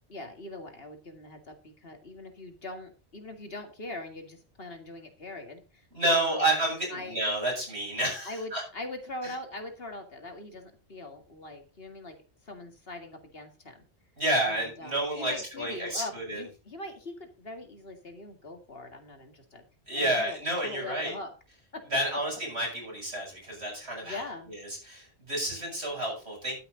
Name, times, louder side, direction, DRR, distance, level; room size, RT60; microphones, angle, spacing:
voice 1, 0.1-6.4 6.9-7.2 8.3-12.2 12.5-13.8 14.5-19.6 19.9-20.4 20.6-21.3 21.7-21.8 24.0-24.5, left 2 dB, 60° left, 5 dB, 2.4 m, -41 dB
voice 2, 5.9-8.6 9.2-9.3 14.2-16.4 19.9-21.1 21.9-24.2 24.5-26.6, right 1 dB, 75° right, -1 dB, 8.2 m, -30 dB
12.0 x 10.0 x 3.9 m, 0.33 s
omnidirectional pair, 1.1 m